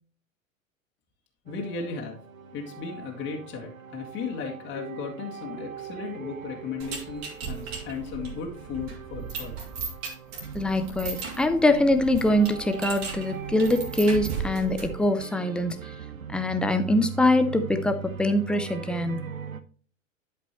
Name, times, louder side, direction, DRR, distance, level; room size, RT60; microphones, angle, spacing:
voice 1, 1.5-2.2 2.5-9.5, left 5 dB, 30° left, 0 dB, 1.9 m, -35 dB
sound 1, 1.5-19.6, right 6 dB, 80° right, 0.8 m, -41 dB
sound 2, 6.8-15.1, right 5 dB, 50° right, 2.8 m, -37 dB
voice 2, 10.5-15.8 16.3-19.3, left 1 dB, ahead, 8 dB, 0.4 m, -23 dB
11.5 x 5.2 x 3.0 m, 0.43 s
figure-of-eight pair, 90°, 40 cm